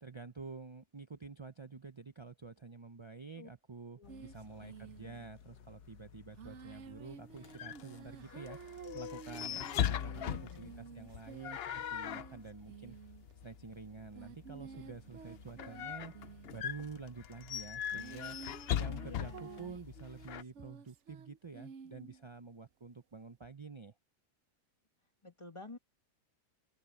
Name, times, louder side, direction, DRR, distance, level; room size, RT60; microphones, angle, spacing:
voice 1, 0.0-8.6 8.9-13.0 13.4-16.1 16.5-18.4 18.8-23.9, right 4 dB, 40° right, 0.4 m, -49 dB
sound 1, 4.0-9.3, left 7 dB, 90° left, 1.5 m, -58 dB
sound 2, 4.1-5.4 6.4-22.2, right 6 dB, 60° right, 1.0 m, -52 dB
sound 3, 7.1-20.4, left 10 dB, 65° left, 0.6 m, -40 dB
voice 2, 10.0-10.7 18.8-19.8 25.2-25.8, left 3 dB, 20° left, 1.8 m, -51 dB
open air
omnidirectional pair, 1.6 m